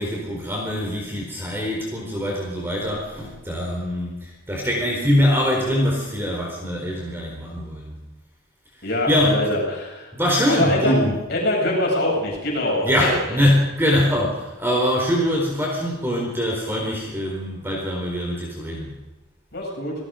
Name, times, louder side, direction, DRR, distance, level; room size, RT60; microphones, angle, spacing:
voice 1, 0.0-8.0 8.7-9.4 10.1-11.2 12.8-18.9, equal, 10° right, -1 dB, 4.3 m, -23 dB
voice 2, 8.8-10.1 10.5-11.0 11.3-13.1 19.5-19.9, left 1 dB, 55° left, -2 dB, 7.9 m, -23 dB
28.5 x 19.0 x 5.2 m, 1.1 s
head